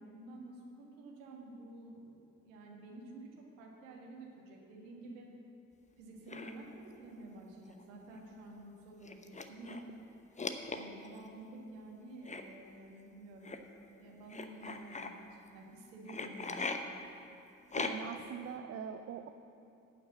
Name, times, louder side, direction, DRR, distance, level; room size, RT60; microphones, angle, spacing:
voice 1, 0.0-3.3 3.6-5.3 6.0-9.9 10.7-13.5 14.0-16.7, right 2 dB, 75° right, -1 dB, 1.7 m, -50 dB
sound 1, 6.3-6.5 7.7-7.8 8.1-8.2 9.0-9.9 10.4-11.2 12.2-12.4 13.4-13.6 14.3-15.1 16.1-16.8 17.7-18.2, left 4 dB, 20° left, 0.8 m, -39 dB
voice 2, 17.8-19.3, right 7 dB, 35° right, 7 dB, 0.6 m, -42 dB
11.0 x 6.0 x 7.5 m, 2.7 s
hypercardioid pair, 50°, 40 cm